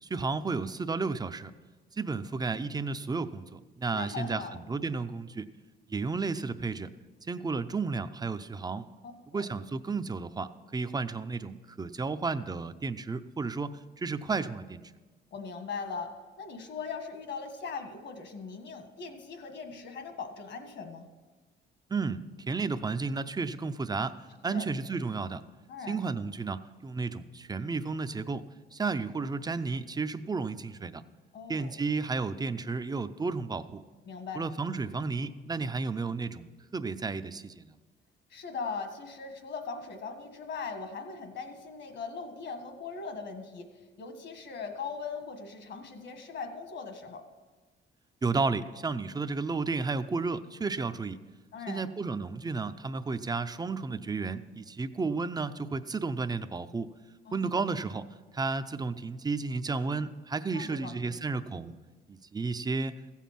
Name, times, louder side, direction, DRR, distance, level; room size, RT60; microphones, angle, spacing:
voice 1, 0.0-1.5 2.0-5.5 5.9-6.9 7.3-8.9 9.3-14.8 21.9-22.2 22.5-24.1 24.4-25.4 25.9-28.4 28.7-31.0 31.5-33.8 34.4-37.7 48.2-51.2 51.7-56.9 57.3-58.0 58.3-61.7 62.1-63.0, right 4 dB, 20° right, 11 dB, 0.6 m, -32 dB
voice 2, 3.9-4.6 9.3-9.4 15.3-21.1 24.5-24.7 25.7-26.0 31.3-31.7 34.0-34.4 38.3-47.2 51.5-51.9 57.3-57.6 60.5-61.2, left 5 dB, 65° left, 6 dB, 1.6 m, -40 dB
15.5 x 7.3 x 5.9 m, 1.3 s
cardioid pair, 90°, 20 cm